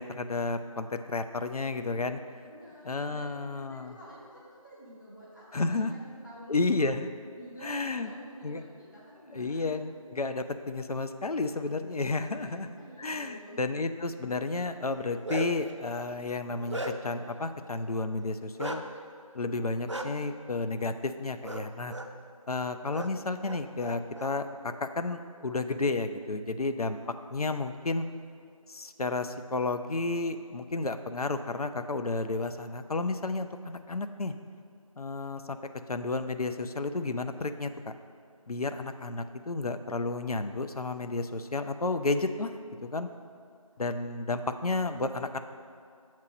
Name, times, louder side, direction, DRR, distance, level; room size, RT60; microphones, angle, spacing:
voice 1, 0.0-2.2 2.8-3.9 5.5-5.9 6.5-7.1 7.6-8.1 8.4-8.6 9.3-12.7 13.0-18.8 19.3-21.9 22.5-27.0 27.3-28.1 28.7-34.3 35.0-35.6 35.9-38.0 38.5-43.1 43.8-45.4, left 3 dB, 85° left, 9 dB, 0.5 m, -32 dB
voice 2, 2.4-6.8 7.3-8.6 8.9-9.7 12.2-13.8, equal, 30° left, -7 dB, 0.8 m, -49 dB
Bark, 14.9-15.7 16.2-17.2 18.6-18.8 19.9-20.1 21.4-21.6 21.9-22.1 22.9-23.1 23.4-24.3, right 1 dB, 55° right, 0.4 m, -36 dB
7.4 x 3.0 x 5.9 m, 2.3 s
figure-of-eight pair, 175°, 19 cm